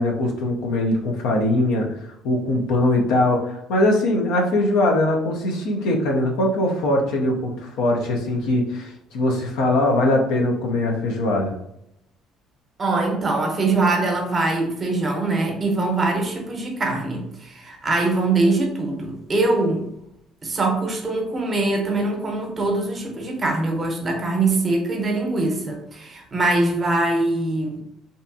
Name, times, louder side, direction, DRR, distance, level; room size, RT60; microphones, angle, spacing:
voice 1, 0.0-11.5, left 1 dB, 80° left, 1 dB, 0.5 m, -21 dB
voice 2, 12.8-19.9 20.4-27.8, right 2 dB, 35° right, 2 dB, 0.7 m, -23 dB
2.6 x 2.3 x 2.6 m, 0.79 s
supercardioid pair, 75°, 0 cm